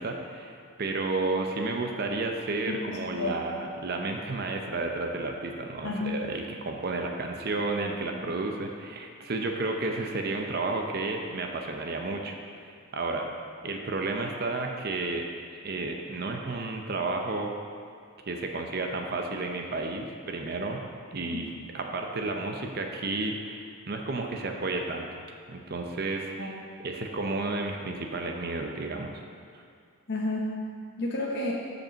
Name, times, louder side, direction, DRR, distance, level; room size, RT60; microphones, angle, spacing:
voice 1, 0.0-13.3 13.6-15.3 15.6-17.5 18.3-20.8 21.1-25.1 25.5-26.6 26.8-29.2 29.5-29.6, right 3 dB, 45° right, 3 dB, 0.6 m, -32 dB
voice 2, 2.7-3.4 5.8-6.1 8.1-8.3 21.3-21.5 26.4-26.5 30.1-30.5 31.0-31.5, left 2 dB, 50° left, -3 dB, 1.0 m, -31 dB
7.3 x 5.3 x 6.3 m, 2.3 s
head